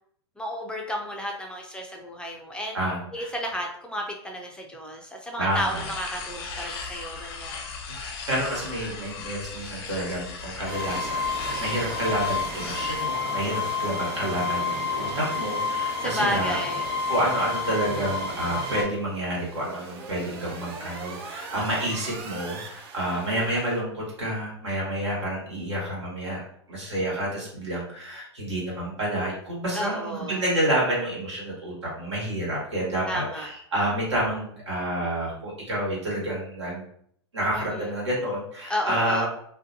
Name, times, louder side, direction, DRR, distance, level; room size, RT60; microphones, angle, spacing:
voice 1, 0.4-2.8 3.1-7.6 16.0-16.9 23.1-23.5 29.7-30.4 33.1-33.5 37.5-37.9 38.7-39.3, equal, 5° left, 1 dB, 0.4 m, -32 dB
voice 2, 2.7-3.3 5.4-5.8 8.3-16.6 17.1-26.4 26.7-36.8 37.3-39.3, right 1 dB, 85° right, -5 dB, 1.3 m, -29 dB
sound 1, 5.5-13.1, left 4 dB, 60° left, 0.5 m, -38 dB
sound 2, 10.7-18.8, left 3 dB, 35° right, 1.1 m, -29 dB
sound 3, 18.8-23.8, right 4 dB, 60° right, 0.6 m, -41 dB
2.6 x 2.1 x 2.6 m, 0.67 s
hypercardioid pair, 105°, 15 cm